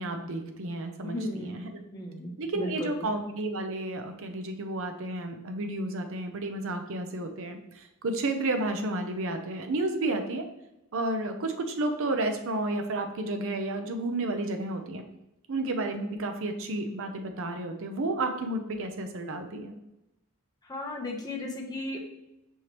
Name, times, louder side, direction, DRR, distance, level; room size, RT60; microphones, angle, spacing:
voice 1, 0.0-1.5 2.4-10.5 10.9-15.0 15.5-19.7, right 2 dB, 65° right, 6 dB, 0.6 m, -31 dB
voice 2, 1.0-3.1 20.6-22.0, left 1 dB, 20° left, -1 dB, 0.8 m, -36 dB
5.4 x 3.2 x 2.9 m, 0.87 s
head